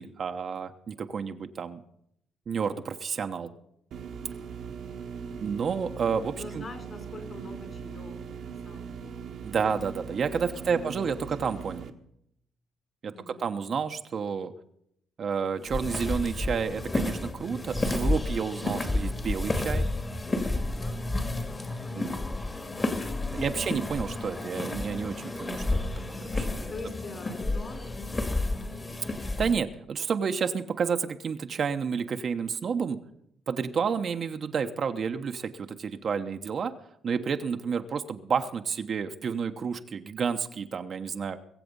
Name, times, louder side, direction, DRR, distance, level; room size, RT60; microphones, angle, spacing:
voice 1, 0.0-1.8 2.5-3.5 5.4-6.6 9.4-11.9 13.0-14.5 15.2-19.9 21.9-22.2 23.3-25.8 26.1-26.7 29.4-33.0 33.5-36.7 37.0-41.4, right 6 dB, 50° right, 6 dB, 1.1 m, -30 dB
sound 1, 3.9-11.9, right 6 dB, 70° right, 1.5 m, -40 dB
voice 2, 5.2-5.7 6.4-8.1 8.4-9.4 9.7-9.8 10.5-11.1 11.4-11.5 13.1-13.5 20.6-21.1 21.8-22.1 23.0-23.5 26.7-28.5, left 3 dB, 40° left, 7 dB, 3.8 m, -45 dB
sound 2, 15.6-29.5, left 2 dB, 25° left, 2.1 m, -31 dB
22.5 x 7.7 x 5.4 m, 0.73 s
cardioid pair, 90°, 0 cm